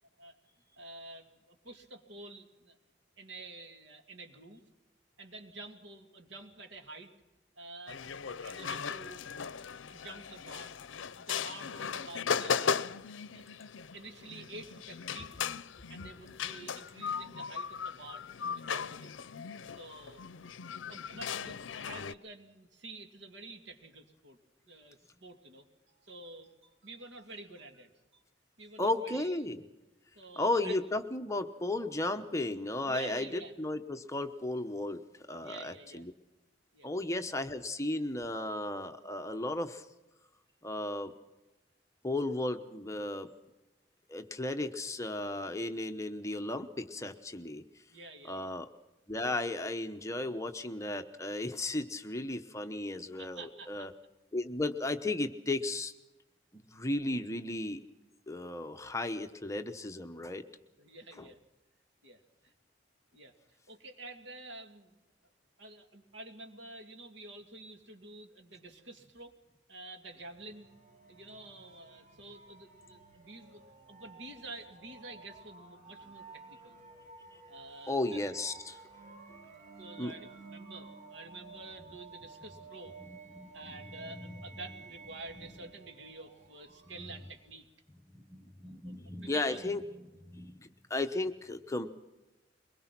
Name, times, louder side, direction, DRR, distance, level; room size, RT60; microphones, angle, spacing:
voice 1, 0.8-2.8 3.2-4.6 5.2-7.1 7.6-8.1 8.4-9.2 9.9-10.8 11.2-13.0 13.3-13.4 13.9-15.3 15.9-18.3 18.5-19.2 19.8-20.2 20.9-24.4 24.7-28.2 28.6-29.4 30.1-30.8 32.9-33.5 35.4-36.1 36.7-36.9 47.9-48.6 53.2-53.9 60.8-61.4 62.0-62.5 63.1-63.3 63.7-65.0 65.6-69.4 69.7-70.7 71.1-73.6 73.9-76.8 77.5-78.2 79.4-83.0 83.5-87.7 88.8-88.9 89.2-89.7, right 2 dB, 80° right, 5 dB, 2.5 m, -49 dB
sound 1, 7.9-22.1, left 6 dB, 85° left, 0.6 m, -37 dB
voice 2, 28.8-29.6 30.4-35.0 35.3-36.1 36.8-39.9 40.6-41.1 42.0-43.3 44.1-47.6 48.3-48.7 49.1-53.9 54.3-55.9 56.7-57.8 58.3-60.4 61.2-61.3 77.9-78.8 80.0-80.1 83.0-83.8 84.1-84.4 88.1-89.8 90.3-92.0, left 2 dB, 15° left, 7 dB, 0.9 m, -35 dB
sound 2, 70.0-87.5, right 4 dB, 45° right, 5.9 m, -53 dB
23.0 x 21.0 x 6.0 m, 1.0 s
head